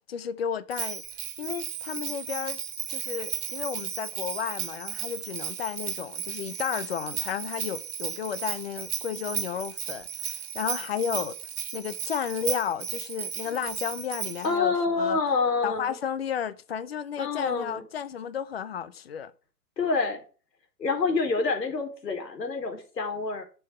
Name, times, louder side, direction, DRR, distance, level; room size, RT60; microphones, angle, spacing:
voice 1, 0.1-1.0 1.4-2.6 2.9-11.4 11.7-15.2 15.6-19.3, left 8 dB, 40° left, 0.8 m, -33 dB
Bell, 0.7-14.5, right 8 dB, 60° right, 1.8 m, -35 dB
voice 2, 14.4-16.0 17.2-17.9 19.8-20.2 20.8-23.4, left 4 dB, 85° left, 4.3 m, -27 dB
7.1 x 6.9 x 7.7 m
hypercardioid pair, 165°, 49 cm